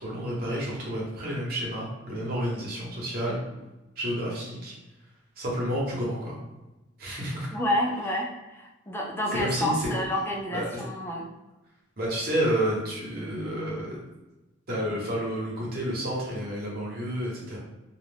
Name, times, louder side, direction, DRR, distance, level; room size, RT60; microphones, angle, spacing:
voice 1, 0.0-3.4 4.0-4.7 5.4-6.4 7.0-7.5 9.3-9.9 10.5-10.9 12.0-14.0 14.7-17.6, equal, 50° right, -4 dB, 0.9 m, -30 dB
voice 2, 7.5-11.3, left 1 dB, 10° left, -1 dB, 0.4 m, -29 dB
2.3 x 2.1 x 3.3 m, 1.0 s
head